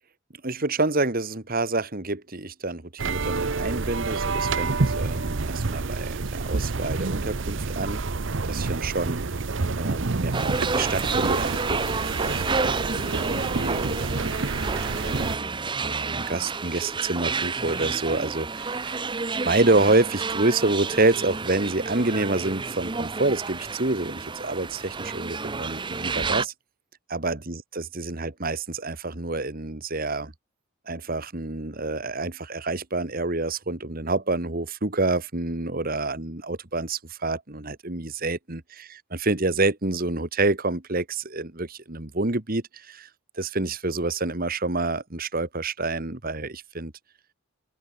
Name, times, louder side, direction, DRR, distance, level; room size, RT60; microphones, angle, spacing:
voice 1, 0.4-8.0 8.4-9.4 9.8-14.7 15.0-19.1 19.5-26.5 27.1-30.3 30.9-43.1 43.4-46.9, right 2 dB, 40° right, 1.7 m, -28 dB
sound 1, 3.0-15.4, right 3 dB, 55° right, 0.8 m, -28 dB
sound 2, 10.3-26.5, right 4 dB, 20° right, 0.7 m, -30 dB
open air
head